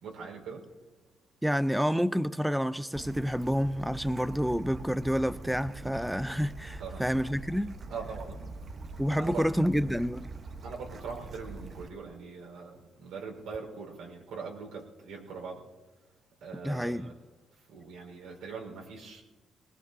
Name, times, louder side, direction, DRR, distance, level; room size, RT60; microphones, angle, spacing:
voice 1, 0.0-0.7 6.7-7.0 7.9-8.4 9.0-9.5 10.6-15.6 16.4-17.1 17.7-19.2, right 5 dB, 85° right, 4.4 m, -42 dB
voice 2, 1.4-7.7 9.0-10.3 16.6-17.1, equal, ahead, 0.4 m, -29 dB
Bird / Stream, 2.9-11.9, right 3 dB, 45° right, 1.0 m, -43 dB
21.0 x 20.0 x 2.7 m
cardioid pair, 90°, 0 cm